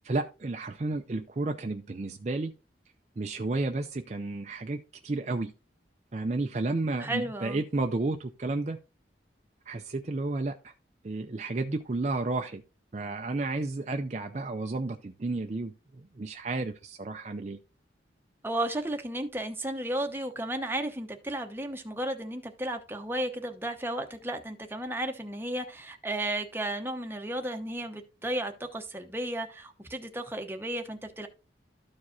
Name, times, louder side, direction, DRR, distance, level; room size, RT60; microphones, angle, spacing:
voice 1, 0.0-2.5 3.2-5.5 6.1-8.8 9.7-10.7 11.0-12.6 12.9-15.7 16.2-17.6, right 2 dB, 35° right, 0.5 m, -32 dB
voice 2, 7.0-7.6 18.4-31.3, right 1 dB, 10° right, 0.8 m, -34 dB
13.0 x 4.7 x 2.7 m
head